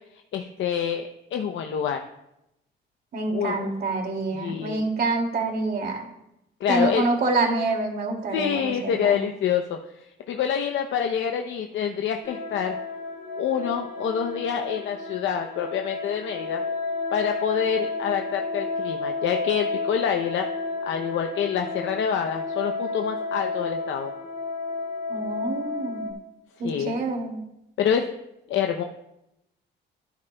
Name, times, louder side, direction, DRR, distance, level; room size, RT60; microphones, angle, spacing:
voice 1, 0.3-2.0 3.3-3.7 4.3-4.8 6.6-7.0 8.3-12.7 13.4-16.6 17.1-20.5 20.9-24.1 26.6-26.9 27.8-28.1 28.5-28.8, left 8 dB, 70° left, 4 dB, 0.7 m, -27 dB
voice 2, 3.1-6.0 6.7-9.2 25.1-26.1 26.6-27.4, right 3 dB, 50° right, 2 dB, 2.5 m, -26 dB
sound 1, 12.2-26.1, left 3 dB, 55° left, 3.5 m, -32 dB
13.0 x 9.9 x 2.3 m, 0.86 s
cardioid pair, 90°, 20 cm